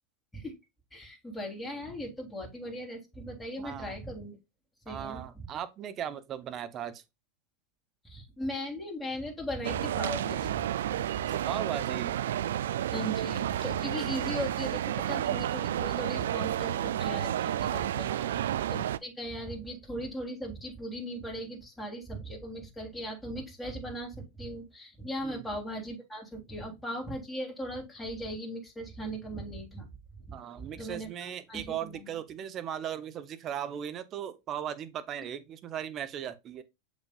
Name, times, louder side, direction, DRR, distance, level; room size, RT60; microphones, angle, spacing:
voice 1, 0.9-4.4 4.8-5.5 8.0-10.7 12.9-29.9 30.2-30.4 30.8-32.1, equal, 5° left, 3.3 m, -38 dB
voice 2, 3.6-4.0 4.9-7.0 11.3-12.1 18.1-18.4 25.2-25.5 30.3-36.6, right 9 dB, 35° right, 0.9 m, -38 dB
sound 1, 9.6-19.0, right 11 dB, 75° right, 0.3 m, -31 dB
7.2 x 6.2 x 2.4 m
hypercardioid pair, 100°, 0 cm